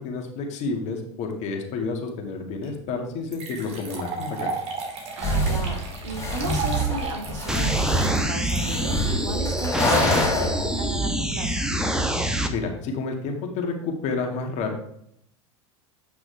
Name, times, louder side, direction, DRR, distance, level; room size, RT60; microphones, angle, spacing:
voice 1, 0.0-4.5 12.5-14.8, left 4 dB, 50° left, 3 dB, 2.0 m, -30 dB
sound 1, 2.6-2.7 3.3-9.6, right 4 dB, 45° right, 2.4 m, -34 dB
sound 2, 5.2-10.8, equal, 20° left, 3.0 m, -26 dB
voice 2, 5.2-11.7, right 2 dB, 85° right, 3 dB, 2.0 m, -35 dB
sound 3, 7.5-12.5, right 1 dB, 5° right, 1.0 m, -26 dB
8.6 x 5.8 x 3.4 m, 0.73 s
hypercardioid pair, 95°, 15 cm